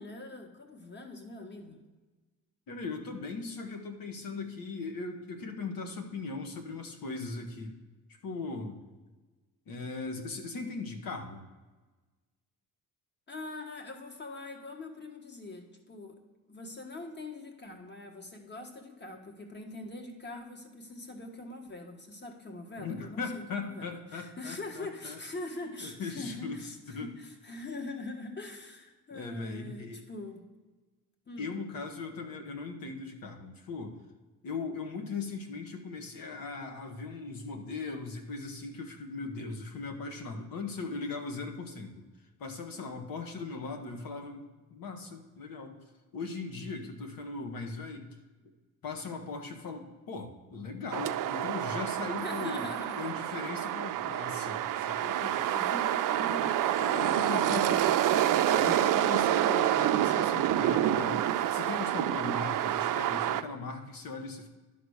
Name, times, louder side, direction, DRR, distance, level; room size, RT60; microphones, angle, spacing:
voice 1, 0.0-1.8 13.3-16.2 16.5-30.4 31.3-31.5 52.2-53.1 55.4-57.9 58.2-58.5 58.8-59.2, left 2 dB, 30° left, 3 dB, 1.5 m, -43 dB
voice 2, 2.7-7.8 8.1-8.8 9.7-11.4 22.8-25.2 25.8-27.1 29.1-30.0 31.4-34.0 34.4-42.1 42.4-45.8 46.1-48.1 48.8-52.7 53.0-55.6 56.8-57.9 58.5-64.5, left 4 dB, 75° left, 4 dB, 1.5 m, -39 dB
sound 1, 50.9-63.4, right 12 dB, 65° right, 0.5 m, -28 dB
11.5 x 4.0 x 6.4 m, 1.3 s
cardioid pair, 115°, 35 cm